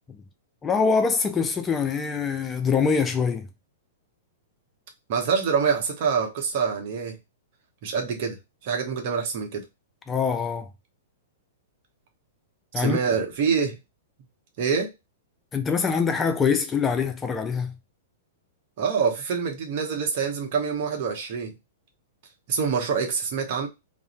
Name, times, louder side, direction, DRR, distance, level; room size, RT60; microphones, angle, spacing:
voice 1, 0.6-3.5 10.1-10.7 12.7-13.0 15.5-17.7, left 5 dB, 20° left, 0.3 m, -24 dB
voice 2, 5.1-7.2 7.8-8.4 8.6-9.6 12.8-13.8 14.6-14.9 18.8-21.5 22.5-23.7, right 6 dB, 50° right, 0.8 m, -25 dB
2.4 x 2.0 x 2.9 m
hypercardioid pair, 115°, 0 cm